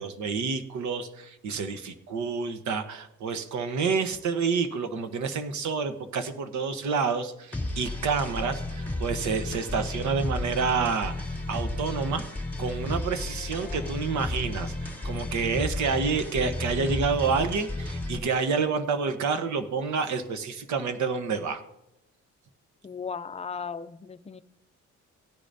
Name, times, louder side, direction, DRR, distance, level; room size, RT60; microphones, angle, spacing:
voice 1, 0.0-12.2 12.6-21.6, right 5 dB, 70° right, 9 dB, 1.1 m, -28 dB
sound 1, 7.5-18.2, left 2 dB, 5° left, 3.2 m, -33 dB
voice 2, 13.3-14.0 22.8-24.4, left 6 dB, 20° left, 11 dB, 0.5 m, -37 dB
16.5 x 10.0 x 2.7 m, 0.88 s
cardioid pair, 90°, 30 cm